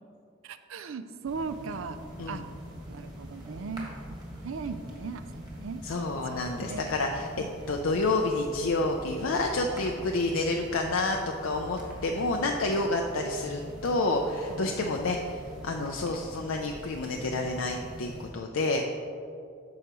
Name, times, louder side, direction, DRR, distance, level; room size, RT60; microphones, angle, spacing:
voice 1, 0.4-2.0 2.3-2.4 2.9-4.1 4.4-5.8 6.6-6.9 7.4-7.5 14.5-14.7 15.8-16.0, right 4 dB, 75° right, 10 dB, 0.4 m, -38 dB
sound 1, 1.3-18.3, equal, 20° right, 1.6 m, -43 dB
voice 2, 5.8-7.3 7.7-18.9, left 2 dB, 85° left, 2 dB, 0.5 m, -29 dB
13.5 x 4.8 x 3.0 m, 2.5 s
head